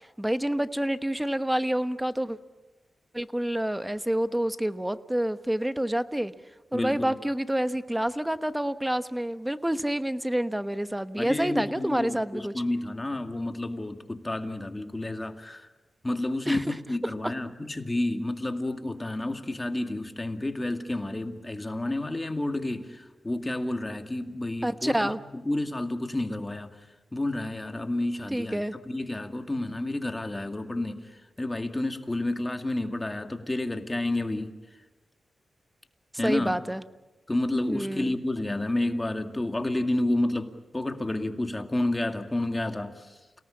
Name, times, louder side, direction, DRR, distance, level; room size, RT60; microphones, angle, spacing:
voice 1, 0.0-2.4 3.1-6.3 6.7-12.5 16.5-16.8 17.2-17.3 24.6-25.2 28.3-28.7 36.2-36.8 37.7-38.2, right 1 dB, 10° right, 12 dB, 1.1 m, -28 dB
voice 2, 6.7-7.1 11.2-15.7 16.0-26.8 27.1-31.0 31.4-34.5 36.2-36.5 37.3-43.1, left 1 dB, 20° left, 6 dB, 2.2 m, -30 dB
29.0 x 18.5 x 8.7 m, 1.2 s
cardioid pair, 65°, 0 cm